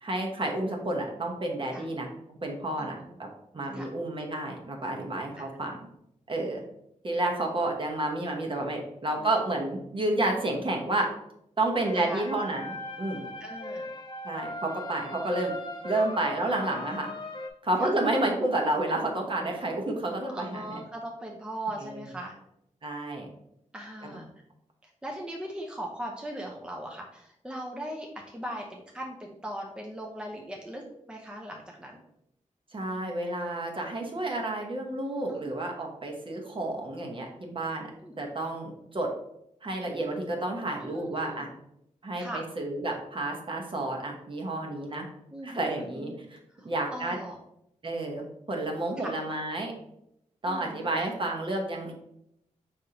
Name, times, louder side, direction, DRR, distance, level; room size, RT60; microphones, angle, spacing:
voice 1, 0.0-2.1 2.4-3.3 3.5-5.8 6.3-6.6 7.0-11.1 11.6-12.7 13.0-13.3 14.2-15.5 15.8-17.1 17.6-20.8 21.8-22.0 22.8-23.3 24.1-24.2 32.7-37.9 38.2-39.1 39.6-41.5 42.0-45.1 45.4-46.4 46.6-47.2 47.8-49.7 50.4-51.9, right 2 dB, 40° right, 1 dB, 1.0 m, -30 dB
voice 2, 2.8-3.2 3.7-3.9 5.3-5.5 9.2-9.3 11.8-12.3 13.4-13.9 15.9-16.0 17.8-17.9 20.3-22.4 23.7-24.3 24.8-32.0 35.3-35.6 38.0-38.1 40.8-41.5 42.1-42.4 45.3-46.2 46.5-47.4 49.0-49.2 50.5-50.9, right 1 dB, 5° right, 0 dB, 0.6 m, -39 dB
sound 1, 11.8-17.5, left 2 dB, 40° left, 0.6 m, -39 dB
5.0 x 3.4 x 2.8 m, 0.78 s
wide cardioid pair, 85°, 13 cm